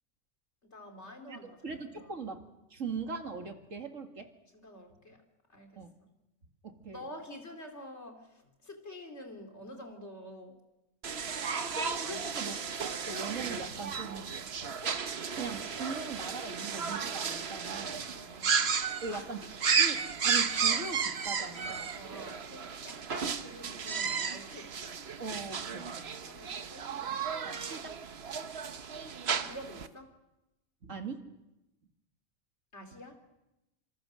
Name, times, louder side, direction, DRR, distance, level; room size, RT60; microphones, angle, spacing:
voice 1, 0.6-2.2 4.5-5.2 5.5-5.9 6.9-10.6 12.0-12.5 18.0-18.6 19.1-19.5 21.9-25.0 26.2-27.2 29.4-30.1 32.7-33.2, left 1 dB, 60° left, 4 dB, 3.5 m, -48 dB
voice 2, 1.3-2.4 2.7-4.3 5.8-5.9 6.6-7.0 11.7-14.4 14.8-15.0 15.3-18.1 19.0-19.4 19.8-21.9 25.2-26.1 27.4-28.0 30.8-31.2, right 4 dB, 75° right, 5 dB, 2.5 m, -40 dB
sound 1, 11.0-29.9, right 6 dB, 55° right, 1.2 m, -33 dB
27.0 x 26.0 x 6.4 m, 0.96 s
omnidirectional pair, 1.3 m